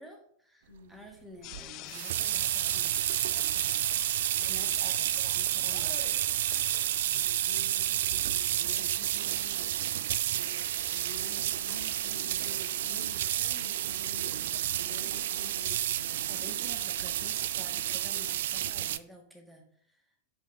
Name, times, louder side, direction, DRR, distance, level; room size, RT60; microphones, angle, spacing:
voice 1, 0.0-6.0 16.3-19.6, equal, 5° right, 1 dB, 1.9 m, -50 dB
voice 2, 0.7-1.1 4.4-4.7 7.0-9.9 10.2-16.5, left 2 dB, 75° left, -4 dB, 1.4 m, -50 dB
sound 1, 1.4-7.0, left 15 dB, 40° left, 0.4 m, -48 dB
sound 2, 1.5-19.0, right 12 dB, 55° right, 0.3 m, -30 dB
6.5 x 5.2 x 5.2 m, 0.64 s
figure-of-eight pair, 90°, 0 cm